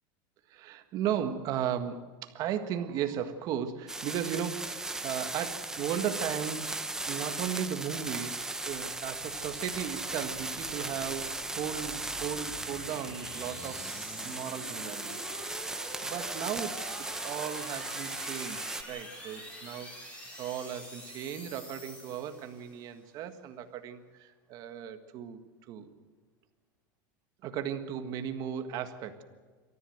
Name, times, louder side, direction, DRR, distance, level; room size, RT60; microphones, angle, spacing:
voice 1, 0.5-14.0 14.2-15.2 15.5-16.9 17.2-19.9 20.4-25.9 27.4-29.2, right 9 dB, 35° right, 8 dB, 1.6 m, -36 dB
sound 1, 3.9-18.8, right 2 dB, 5° right, 0.8 m, -37 dB
sound 2, 8.6-22.9, equal, 10° left, 5.5 m, -47 dB
27.5 x 14.0 x 7.8 m, 1.5 s
supercardioid pair, 170°, 11 cm